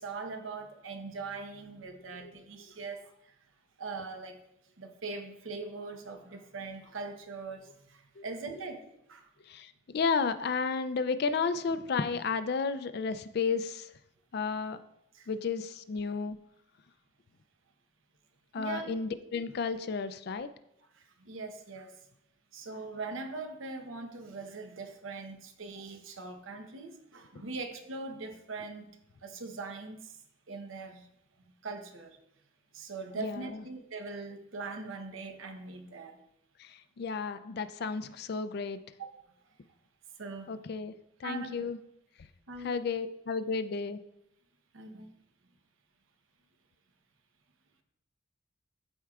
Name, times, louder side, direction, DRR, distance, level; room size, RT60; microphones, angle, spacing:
voice 1, 0.0-3.1 3.8-4.4 4.8-8.8 9.1-9.3 15.1-15.3 18.6-19.0 21.2-21.9 22.5-28.9 29.2-30.2 30.5-31.1 31.6-32.2 32.7-36.2 40.2-40.6 41.2-41.7 42.5-42.7 44.7-45.1, right 3 dB, 85° right, 5 dB, 0.9 m, -41 dB
voice 2, 9.4-13.9 14.3-14.8 15.3-16.4 18.5-20.5 33.1-33.6 36.6-38.8 40.5-40.9 41.2-41.8 42.6-44.0, left 5 dB, 55° left, 12 dB, 0.4 m, -32 dB
13.0 x 4.5 x 2.4 m, 0.80 s
head